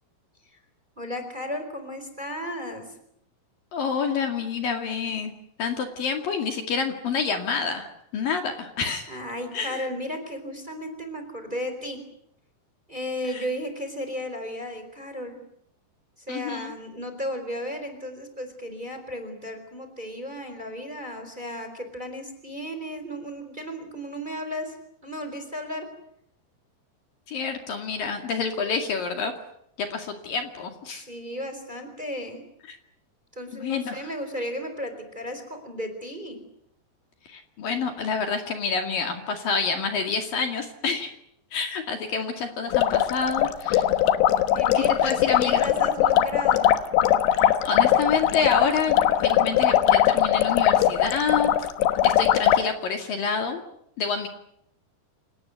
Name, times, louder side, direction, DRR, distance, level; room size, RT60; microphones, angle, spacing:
voice 1, 1.0-2.9 9.1-12.0 12.9-15.4 16.2-24.8 25.0-25.9 30.9-32.4 33.3-36.4 44.5-46.8, equal, 10° right, 7 dB, 3.9 m, -34 dB
voice 2, 3.7-5.3 5.6-9.2 9.5-9.9 13.3-13.4 16.3-16.7 27.3-29.3 29.8-31.0 32.7-32.8 33.6-34.1 37.3-41.1 41.5-43.9 44.7-45.7 47.4-49.0 49.2-51.7 52.0-53.6 54.0-54.3, left 5 dB, 60° left, 5 dB, 3.7 m, -28 dB
sound 1, 42.7-52.6, left 11 dB, 80° left, 3.4 m, -21 dB
28.0 x 18.5 x 9.5 m, 0.74 s
omnidirectional pair, 4.9 m